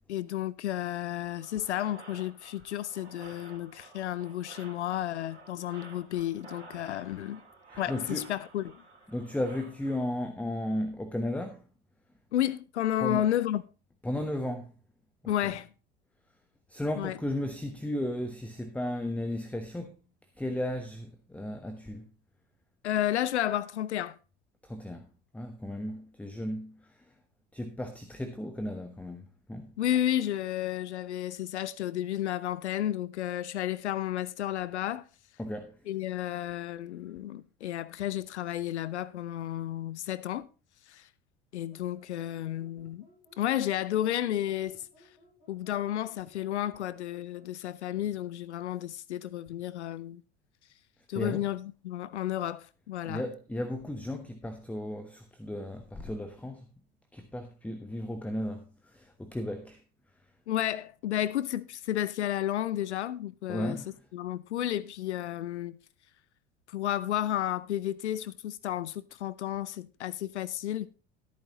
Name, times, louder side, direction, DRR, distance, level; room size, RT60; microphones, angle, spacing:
voice 1, 0.1-7.4 7.8-8.7 12.3-13.6 15.3-15.7 17.0-17.2 22.8-24.2 29.8-35.0 35.9-40.5 40.9-41.1 41.5-43.1 43.4-44.9 45.5-50.2 51.1-53.2 60.5-63.8 64.1-65.8 66.7-70.9, left 12 dB, 75° left, 0.6 m, -32 dB
sound 1, 1.3-10.0, right 3 dB, 75° right, 3.2 m, -52 dB
voice 2, 7.9-8.3 9.1-11.6 13.0-13.3 14.0-14.7 16.7-19.9 20.4-22.1 24.6-25.1 25.3-26.7 27.5-29.7 35.4-35.8 51.1-51.4 53.0-56.7 57.1-58.6 58.9-59.8 63.5-63.9, left 1 dB, 5° left, 1.1 m, -34 dB
sound 2, 41.7-47.6, equal, 55° left, 6.8 m, -61 dB
14.0 x 9.2 x 3.0 m
figure-of-eight pair, 75°, 35 cm